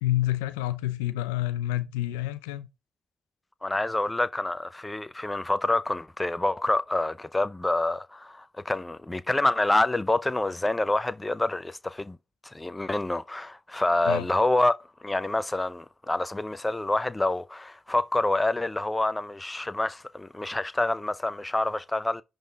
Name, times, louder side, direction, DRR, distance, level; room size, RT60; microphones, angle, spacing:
voice 1, 0.0-2.7 14.0-14.3, left 14 dB, 90° left, 0.6 m, -28 dB
voice 2, 3.6-12.2 12.4-14.7 15.0-22.2, left 2 dB, 20° left, 0.6 m, -27 dB
10.5 x 4.0 x 3.5 m
hypercardioid pair, 45°, 0 cm